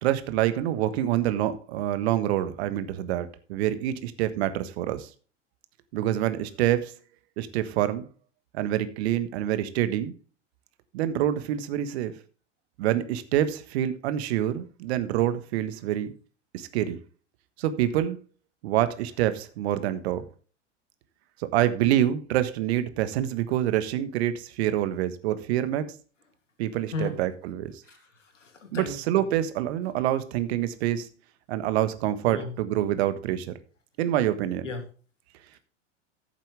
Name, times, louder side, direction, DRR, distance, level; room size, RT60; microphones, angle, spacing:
voice 1, 0.0-5.1 5.9-6.9 7.4-8.0 8.5-10.1 10.9-12.1 12.8-16.1 16.5-17.0 17.6-18.2 18.6-20.2 21.4-25.9 26.6-27.8 28.7-31.1 31.5-33.5 34.0-34.7, right 12 dB, 60° right, 12 dB, 1.4 m, -26 dB
voice 2, 27.9-29.0 32.2-32.5 34.6-34.8, left 3 dB, 85° left, 5 dB, 2.7 m, -35 dB
14.0 x 7.5 x 3.4 m, 0.37 s
hypercardioid pair, 95°, 37 cm